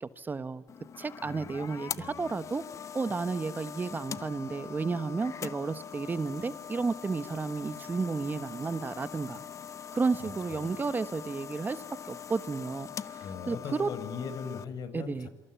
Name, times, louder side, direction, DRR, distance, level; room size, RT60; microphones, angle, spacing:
voice 1, 0.0-0.6 1.0-2.6 2.9-9.4 9.9-13.9 14.9-15.3, right 4 dB, 25° right, 13 dB, 1.3 m, -32 dB
sound 1, 0.7-14.6, left 8 dB, 45° left, 1.1 m, -43 dB
voice 2, 1.2-2.4 10.5-10.7 13.2-15.3, left 6 dB, 60° left, 11 dB, 4.9 m, -40 dB
27.5 x 26.0 x 8.4 m, 1.0 s
cardioid pair, 105°, 7 cm